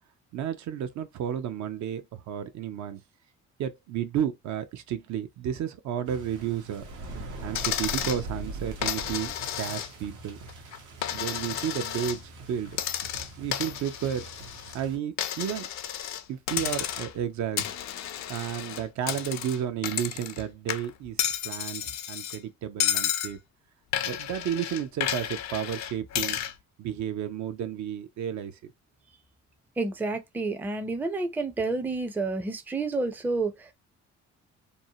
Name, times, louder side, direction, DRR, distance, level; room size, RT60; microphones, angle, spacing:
voice 1, 0.3-3.0 3.6-6.9 7.4-10.4 11.1-12.8 13.2-14.3 14.7-15.7 16.3-17.6 18.3-21.2 21.4-21.8 22.1-23.4 24.0-26.4 26.8-28.7, right 9 dB, 70° right, 0.5 m, -32 dB
sound 1, 6.1-15.0, right 1 dB, 85° right, 0.9 m, -42 dB
Coin (dropping), 7.5-8.2 8.8-10.1 10.5-12.2 12.7-14.8 15.2-16.2 16.5-17.2 17.6-20.4 20.7-22.4 22.8-23.3 23.9-26.5, left 11 dB, 65° left, 0.4 m, -32 dB
voice 2, 29.8-33.7, right 3 dB, 5° right, 0.4 m, -29 dB
2.7 x 2.0 x 2.6 m
cardioid pair, 90°, 30 cm